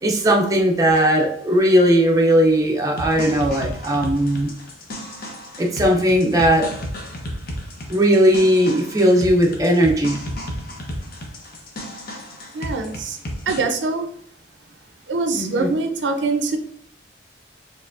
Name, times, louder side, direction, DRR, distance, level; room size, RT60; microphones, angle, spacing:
voice 1, 0.0-4.5 5.6-6.7 7.9-10.2 15.3-15.7, equal, 20° right, 0 dB, 0.5 m, -17 dB
sound 1, 3.0-13.6, equal, 55° left, 0.8 m, -33 dB
voice 2, 12.5-13.2 13.5-14.1 15.1-16.6, right 3 dB, 70° right, 5 dB, 0.5 m, -23 dB
4.5 x 3.0 x 2.5 m, 0.67 s
head